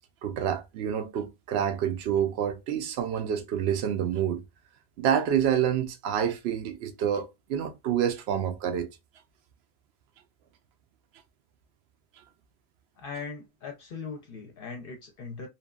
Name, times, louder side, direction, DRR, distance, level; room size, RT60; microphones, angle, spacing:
voice 1, 0.2-4.4 5.0-8.9, right 9 dB, 75° right, 0.8 m, -28 dB
voice 2, 13.0-15.5, left 5 dB, 60° left, 0.7 m, -39 dB
2.8 x 2.2 x 2.2 m
omnidirectional pair, 1.1 m